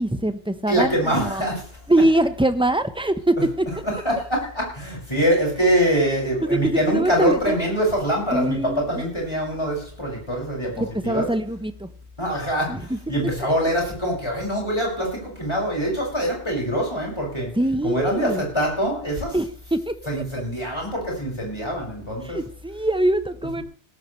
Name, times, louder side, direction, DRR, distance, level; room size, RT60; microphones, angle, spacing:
voice 1, 0.0-1.4 1.9-3.6 6.5-7.6 8.3-8.9 10.8-11.9 12.7-13.0 17.5-18.4 19.3-19.9 22.2-23.6, right 1 dB, 5° right, 10 dB, 0.9 m, -23 dB
voice 2, 0.7-1.8 3.8-11.3 12.2-17.5 17.8-19.4 20.1-22.4, equal, 25° left, -2 dB, 6.4 m, -24 dB
18.0 x 13.5 x 3.3 m, 0.43 s
omnidirectional pair, 1.1 m